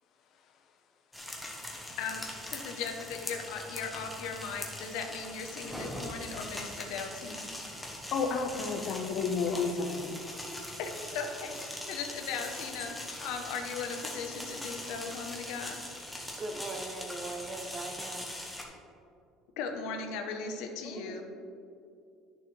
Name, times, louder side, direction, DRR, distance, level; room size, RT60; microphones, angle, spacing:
sound 1, 1.1-18.6, left 1 dB, 5° left, 1.0 m, -41 dB
voice 1, 2.5-7.5 10.8-12.9 13.2-15.8 19.6-21.2, left 5 dB, 70° left, 4 dB, 1.0 m, -38 dB
voice 2, 8.1-10.3, left 4 dB, 45° left, 6 dB, 0.8 m, -31 dB
voice 3, 16.4-18.3 20.8-21.2, right 2 dB, 25° right, 5 dB, 0.7 m, -40 dB
11.0 x 6.7 x 3.3 m, 2.5 s
cardioid pair, 165°, 0 cm